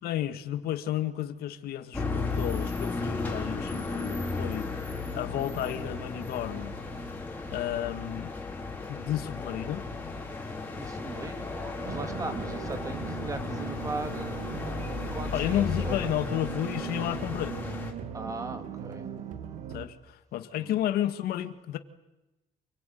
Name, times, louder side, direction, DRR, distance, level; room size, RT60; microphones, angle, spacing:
voice 1, 0.0-4.7 5.1-6.8 7.5-8.3 8.9-9.9 15.0-17.6 19.7-21.8, left 12 dB, 85° left, 9 dB, 2.0 m, -32 dB
sound 1, 1.9-17.9, left 3 dB, 10° left, 4.4 m, -35 dB
voice 2, 10.7-14.5 15.1-16.1 18.1-19.1 20.6-20.7, right 3 dB, 20° right, 8 dB, 2.1 m, -38 dB
sound 2, 11.8-19.9, right 9 dB, 55° right, 2.0 m, -39 dB
28.5 x 21.5 x 9.4 m, 0.97 s
cardioid pair, 175°, 16 cm